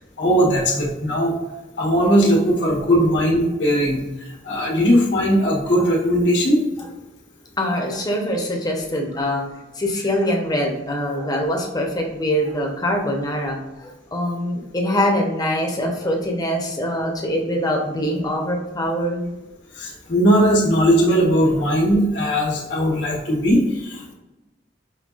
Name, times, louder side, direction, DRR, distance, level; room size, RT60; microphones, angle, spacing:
voice 1, 0.2-1.3 1.8-4.0 4.4-6.6 19.7-24.1, equal, 80° left, -3 dB, 1.3 m, -18 dB
voice 2, 7.6-9.4 9.8-19.4 23.1-23.2, equal, 20° left, 0 dB, 0.8 m, -23 dB
5.5 x 2.9 x 2.4 m, 1.0 s
head